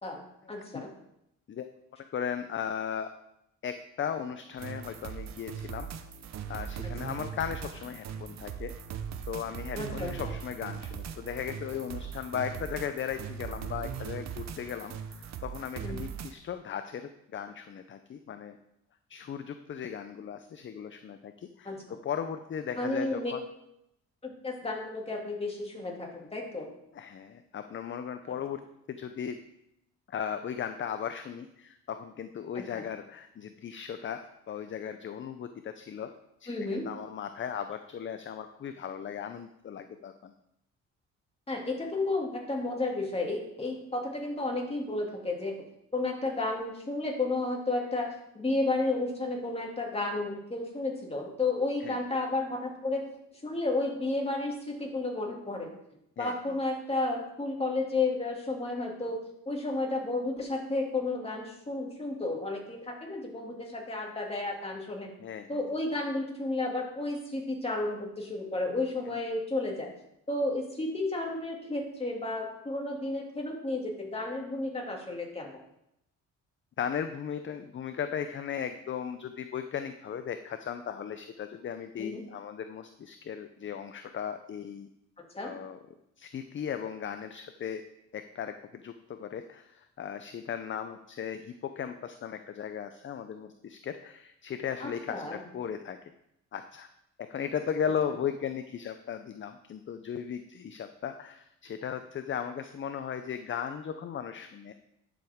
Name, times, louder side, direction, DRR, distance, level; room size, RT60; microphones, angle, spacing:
voice 1, 0.5-0.9 6.8-6.9 9.7-10.4 15.8-16.0 21.6-21.8 22.8-23.3 24.2-26.7 32.5-32.7 36.5-36.9 41.5-45.6 45.9-48.1 48.3-53.0 53.4-55.7 56.2-59.2 59.5-65.1 65.5-69.9 70.3-75.5 82.0-82.2 85.3-85.5 94.8-95.4, left 2 dB, 20° left, -1 dB, 2.5 m, -32 dB
voice 2, 2.1-3.1 3.6-5.9 6.5-8.7 9.3-18.6 19.1-21.8 22.0-23.4 26.9-28.6 28.9-29.4 30.1-36.1 36.4-40.3 51.8-52.0 56.2-56.6 65.2-65.7 76.8-84.9 85.4-85.8 86.2-87.8 88.1-96.0 96.5-96.9 97.3-104.7, left 8 dB, 40° left, 9 dB, 0.6 m, -37 dB
sound 1, 4.6-16.3, right 8 dB, 60° right, 0.8 m, -39 dB
11.0 x 7.1 x 3.6 m, 0.80 s
cardioid pair, 90°, 30 cm